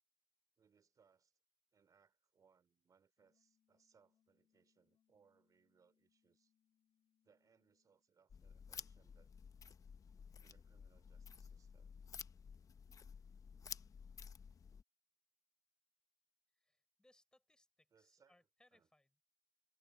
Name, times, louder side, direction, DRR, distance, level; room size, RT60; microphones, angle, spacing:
voice 1, 0.6-1.4 1.7-6.5 7.2-9.3 10.4-11.9 17.9-18.9, right 6 dB, 50° right, 3.6 m, -74 dB
sound 1, 3.2-8.1, left 10 dB, 65° left, 3.0 m, -84 dB
sound 2, 8.3-14.8, left 6 dB, 45° left, 0.9 m, -53 dB
voice 2, 16.5-19.2, left 1 dB, 10° left, 4.9 m, -74 dB
cardioid pair, 90°, 8 cm